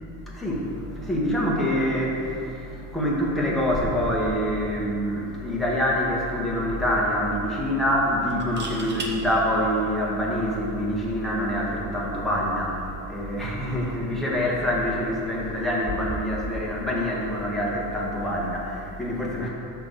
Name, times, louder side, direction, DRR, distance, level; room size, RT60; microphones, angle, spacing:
voice 1, 0.3-19.5, equal, ahead, -6 dB, 1.8 m, -26 dB
sound 1, 5.5-5.7 6.0-6.1 8.3-9.1 11.0-11.2, right 3 dB, 25° right, 1.2 m, -36 dB
12.0 x 4.5 x 6.8 m, 2.7 s
cardioid pair, 150°, 40 cm